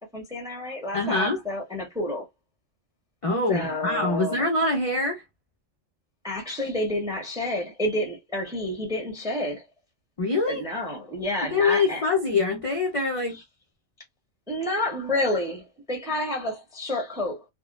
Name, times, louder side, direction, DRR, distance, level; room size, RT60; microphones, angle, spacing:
voice 1, 0.1-2.3 3.5-4.4 6.2-9.6 10.5-12.0 14.5-17.4, left 1 dB, 5° right, 0.6 m, -29 dB
voice 2, 0.9-1.4 3.2-5.2 10.2-10.6 11.4-13.4, left 3 dB, 60° left, 0.3 m, -24 dB
3.7 x 2.1 x 2.3 m
omnidirectional pair, 1.4 m